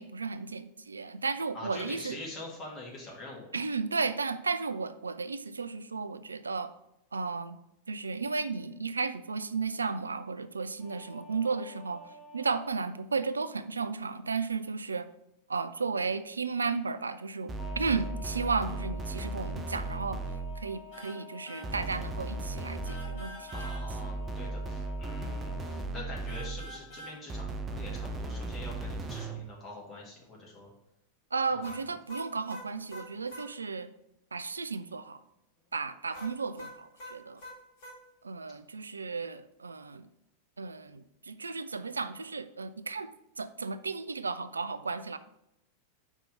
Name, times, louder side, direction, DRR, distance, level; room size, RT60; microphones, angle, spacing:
voice 1, 0.0-2.2 3.5-6.7 7.1-7.6 7.9-12.0 12.3-15.1 15.5-20.2 20.6-23.7 31.3-33.9 34.3-35.2 35.7-37.4 38.2-40.1 40.6-43.1 43.4-45.2, right 4 dB, 75° right, 12 dB, 0.3 m, -34 dB
voice 2, 1.5-3.5 23.5-30.7 31.5-31.9, left 2 dB, 25° left, -3 dB, 2.0 m, -45 dB
sound 1, 10.8-12.6 17.5-25.8, left 4 dB, ahead, 2.4 m, -49 dB
sound 2, 17.5-20.7 21.6-26.8 27.3-29.5, right 2 dB, 20° right, 0.5 m, -36 dB
sound 3, 20.9-21.2 21.4-21.7 22.8-23.8 26.3-27.2 31.6-33.5 36.1-38.0, equal, 50° left, 2.3 m, -45 dB
5.1 x 3.7 x 5.5 m, 0.83 s
figure-of-eight pair, 90°, 0 cm